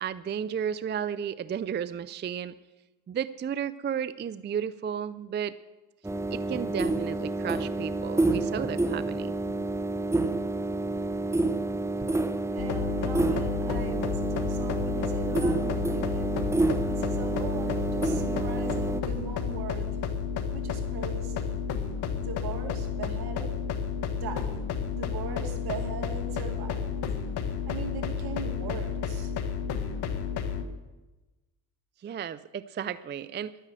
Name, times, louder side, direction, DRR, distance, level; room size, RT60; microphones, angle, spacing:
voice 1, 0.0-2.5 3.1-5.5 6.3-9.3 32.0-33.6, right 8 dB, 30° right, 15 dB, 0.4 m, -33 dB
sound 1, 6.0-19.0, right 2 dB, 5° right, 0.8 m, -29 dB
voice 2, 12.5-16.3 16.9-19.9 20.5-21.5 22.2-23.5 24.2-24.5 24.9-27.0 27.5-29.3, right 5 dB, 70° right, 3 dB, 2.4 m, -40 dB
sound 2, 12.6-30.6, left 7 dB, 75° left, 1.4 m, -31 dB
11.5 x 10.0 x 7.5 m, 1.1 s
cardioid pair, 95°, 40 cm